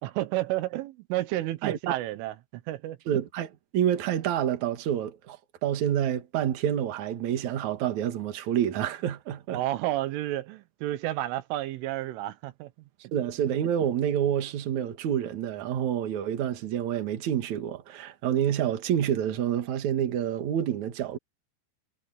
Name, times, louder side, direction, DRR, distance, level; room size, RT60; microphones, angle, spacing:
voice 1, 0.0-3.0 9.5-12.7, right 15 dB, 90° right, 3.8 m, -31 dB
voice 2, 1.6-2.0 3.1-9.6 13.1-21.2, right 10 dB, 55° right, 2.4 m, -28 dB
omnidirectional pair, 5.5 m